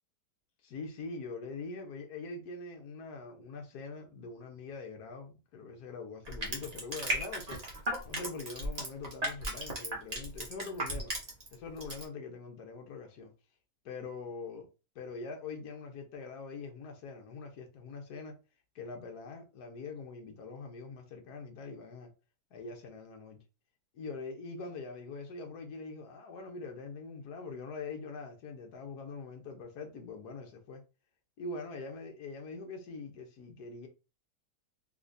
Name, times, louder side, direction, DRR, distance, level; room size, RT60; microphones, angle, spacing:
voice 1, 0.6-7.6 8.0-11.1 11.5-13.3 13.8-14.7 14.9-18.4 18.7-22.1 22.5-23.4 23.9-30.8 31.4-33.9, left 4 dB, 70° left, 1.4 m, -43 dB
Crushing, 6.2-11.5 11.8-12.0, right 1 dB, 30° right, 1.0 m, -35 dB
3.7 x 2.9 x 2.6 m
omnidirectional pair, 1.8 m